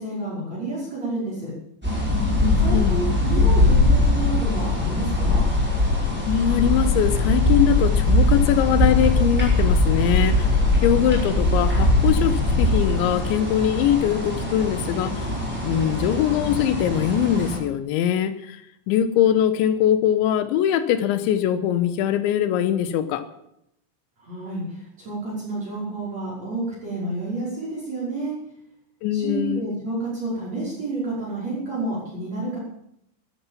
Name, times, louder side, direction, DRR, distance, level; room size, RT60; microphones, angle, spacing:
voice 1, 0.0-1.5 2.6-5.4 24.2-28.3 29.1-32.6, right 2 dB, 35° right, -6 dB, 6.5 m, -30 dB
sound 1, 1.8-17.6, left 2 dB, ahead, 5.2 m, -21 dB
voice 2, 2.4-3.0 6.3-15.3 15.6-18.6 18.9-23.3 29.0-29.7, left 10 dB, 85° left, 12 dB, 3.3 m, -22 dB
14.0 x 13.0 x 7.4 m, 0.76 s
omnidirectional pair, 5.3 m